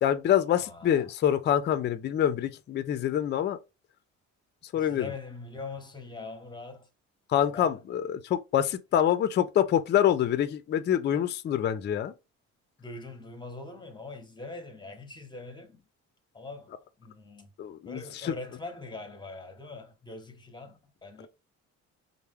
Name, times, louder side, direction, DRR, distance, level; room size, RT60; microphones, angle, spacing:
voice 1, 0.0-3.6 4.7-5.1 7.3-12.1 17.6-18.3, left 10 dB, 35° left, 0.4 m, -26 dB
voice 2, 0.6-1.1 4.7-6.9 7.4-7.8 12.8-15.8 16.3-17.5 17.9-21.3, left 3 dB, 15° left, 0.8 m, -42 dB
4.4 x 2.0 x 3.4 m
cardioid pair, 125°, 30 cm